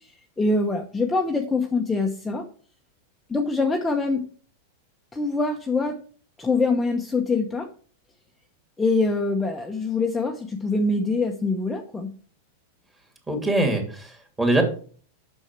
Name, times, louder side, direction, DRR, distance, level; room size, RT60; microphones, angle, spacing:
voice 1, 0.0-2.4 3.3-4.3 5.1-6.0 6.4-7.7 8.8-12.1, left 3 dB, 10° left, 1 dB, 1.0 m, -24 dB
voice 2, 13.3-14.6, right 1 dB, 15° right, 2 dB, 2.8 m, -23 dB
6.4 x 6.2 x 6.0 m, 0.43 s
hypercardioid pair, 120°, 0 cm